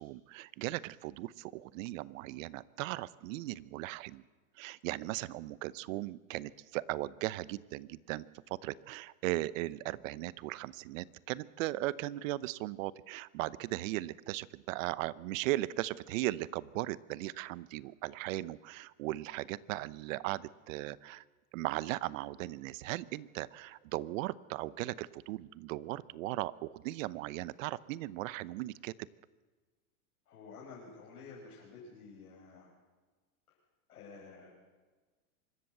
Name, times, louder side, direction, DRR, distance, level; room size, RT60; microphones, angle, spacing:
voice 1, 0.0-4.2 4.6-21.2 21.5-28.9, right 17 dB, 60° right, 19 dB, 0.9 m, -37 dB
voice 2, 30.3-32.7 33.5-33.6 33.9-34.5, left 4 dB, 85° left, -3 dB, 5.6 m, -51 dB
24.5 x 14.0 x 8.0 m, 1.4 s
hypercardioid pair, 115°, 44 cm